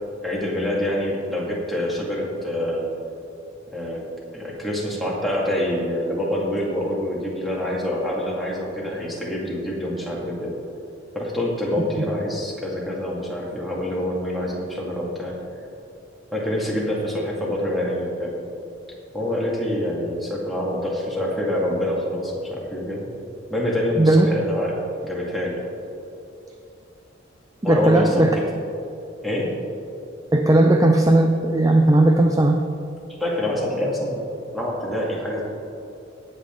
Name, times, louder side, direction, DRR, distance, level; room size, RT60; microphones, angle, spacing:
voice 1, 0.2-2.9 3.7-4.0 4.3-10.5 11.2-15.3 16.3-18.3 19.1-23.1 23.5-24.7 25.0-25.6 27.6-28.4 29.2-29.6 33.2-34.2 34.5-35.4, left 1 dB, ahead, -5 dB, 2.2 m, -26 dB
voice 2, 27.6-28.4 30.3-32.6, right 1 dB, 15° right, 4 dB, 0.5 m, -16 dB
18.0 x 7.8 x 3.9 m, 2.7 s
head